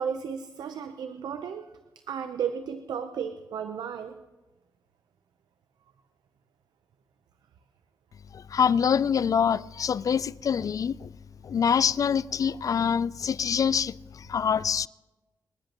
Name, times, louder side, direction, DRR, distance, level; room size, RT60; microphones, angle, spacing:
voice 1, 0.0-1.6 2.1-4.2, right 7 dB, 80° right, 0.7 m, -33 dB
voice 2, 8.3-11.1 11.4-14.9, left 7 dB, 55° left, 0.4 m, -25 dB
30.0 x 10.5 x 3.0 m
supercardioid pair, 50°, 7 cm